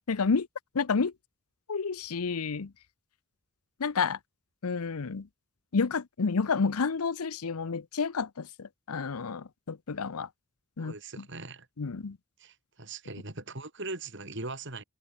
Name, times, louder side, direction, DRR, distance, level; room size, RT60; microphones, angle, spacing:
voice 1, 0.1-0.5 0.7-1.1 1.7-2.7 3.8-4.2 4.6-5.3 5.7-10.3 10.8-10.9 11.8-12.2, left 5 dB, 85° left, 0.7 m, -30 dB
voice 2, 10.8-11.7 12.4-14.8, right 3 dB, 55° right, 4.6 m, -40 dB
head